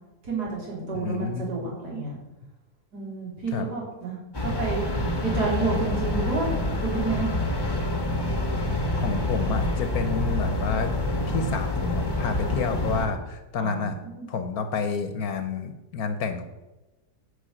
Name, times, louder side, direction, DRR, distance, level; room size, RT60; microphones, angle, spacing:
voice 1, 0.2-2.2 2.9-4.2 4.4-4.8 5.2-7.3 13.6-14.4, right 4 dB, 75° right, -4 dB, 4.1 m, -30 dB
voice 2, 0.9-1.5 3.5-3.7 9.0-10.9 11.3-14.0 14.3-16.4, left 5 dB, 65° left, 8 dB, 1.3 m, -29 dB
sound 1, 4.3-13.1, left 1 dB, 15° left, 1.3 m, -27 dB
10.0 x 5.5 x 7.8 m, 1.0 s
omnidirectional pair, 1.7 m